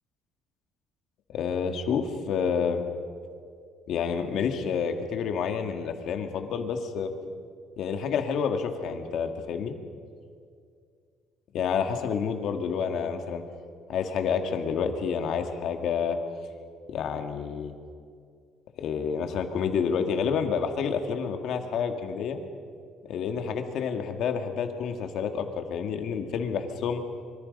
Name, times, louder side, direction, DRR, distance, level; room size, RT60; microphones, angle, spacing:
voice 1, 1.3-2.8 3.9-7.1 7.8-9.7 11.5-13.4 13.9-16.2 16.9-17.7 18.8-22.4 23.1-27.0, left 6 dB, 50° left, 5 dB, 1.9 m, -29 dB
26.0 x 24.5 x 5.4 m, 2.2 s
cardioid pair, 170°, 0 cm